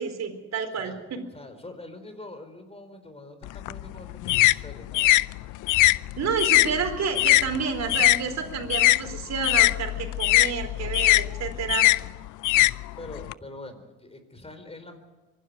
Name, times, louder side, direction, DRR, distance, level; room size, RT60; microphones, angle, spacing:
voice 1, 0.0-1.3 6.2-11.9, right 5 dB, 60° right, 6 dB, 4.2 m, -30 dB
voice 2, 1.3-5.2 13.0-15.0, left 2 dB, 20° left, 8 dB, 4.1 m, -44 dB
sound 1, 3.4-8.2 8.5-13.3, left 18 dB, 80° left, 0.5 m, -21 dB
24.5 x 12.0 x 9.4 m, 1.3 s
cardioid pair, 90°, 30 cm